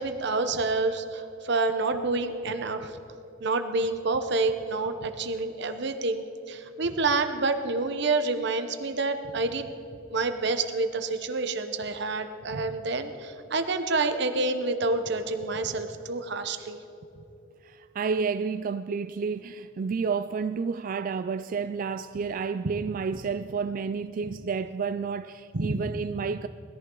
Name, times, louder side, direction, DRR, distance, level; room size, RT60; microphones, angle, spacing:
voice 1, 0.0-3.0 3.4-9.7 10.1-16.8 25.5-25.9, right 3 dB, 60° right, 0.9 m, -28 dB
voice 2, 17.6-26.5, right 5 dB, 45° right, 0.3 m, -30 dB
20.0 x 14.0 x 3.8 m
head